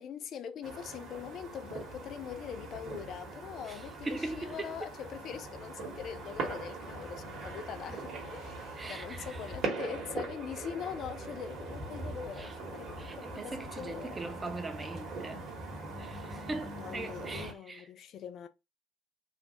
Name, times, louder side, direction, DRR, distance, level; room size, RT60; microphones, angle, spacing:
voice 1, 0.0-14.2 16.8-18.5, left 8 dB, 45° left, 0.4 m, -42 dB
sound 1, 0.6-17.5, right 3 dB, 45° right, 1.0 m, -41 dB
voice 2, 4.0-4.7 8.8-9.4 12.4-12.5 13.0-15.5 16.0-17.8, right 2 dB, 20° right, 0.6 m, -40 dB
3.1 x 2.1 x 2.9 m
figure-of-eight pair, 60°, 0 cm